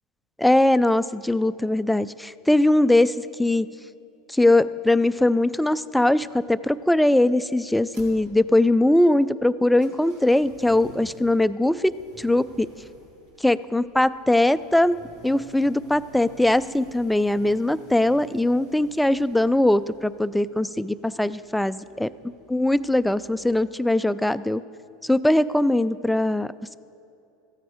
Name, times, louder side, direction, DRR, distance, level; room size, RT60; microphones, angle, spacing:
voice 1, 0.4-3.1 3.4-3.7 4.3-12.7 13.4-22.1 22.5-24.6 25.0-26.5, left 1 dB, 5° left, 15 dB, 0.3 m, -21 dB
sound 1, 5.8-23.7, right 2 dB, 85° right, 2.9 m, -52 dB
14.5 x 9.3 x 5.0 m, 2.7 s
hypercardioid pair, 95°, 0 cm